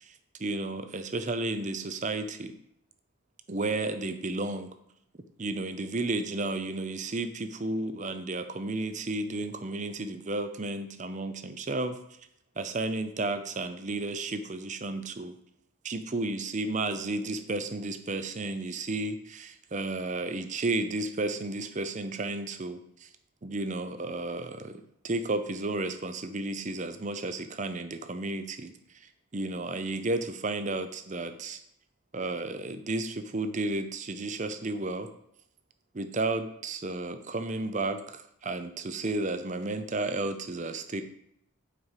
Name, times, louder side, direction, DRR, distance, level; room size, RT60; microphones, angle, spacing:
voice 1, 0.4-2.5 3.5-4.7 5.4-12.0 12.6-15.3 15.8-22.8 23.4-28.7 29.3-31.6 32.1-35.1 35.9-41.0, right 2 dB, 35° right, 9 dB, 0.6 m, -32 dB
8.1 x 4.7 x 5.7 m, 0.75 s
head